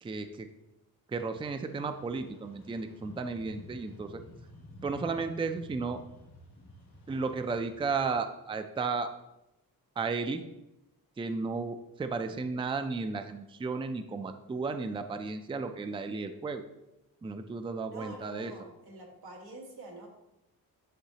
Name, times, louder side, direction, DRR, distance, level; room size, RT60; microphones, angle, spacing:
voice 1, 0.0-0.5 1.1-4.2 4.8-6.0 7.1-9.1 10.0-10.4 11.2-16.6 17.2-18.5, right 4 dB, 15° right, 8 dB, 0.4 m, -34 dB
sound 1, 1.7-8.1, left 1 dB, 90° left, 2.4 m, -52 dB
voice 2, 17.9-20.1, right 2 dB, 90° right, -1 dB, 1.8 m, -46 dB
10.0 x 3.8 x 2.8 m, 0.91 s
cardioid pair, 95°, 37 cm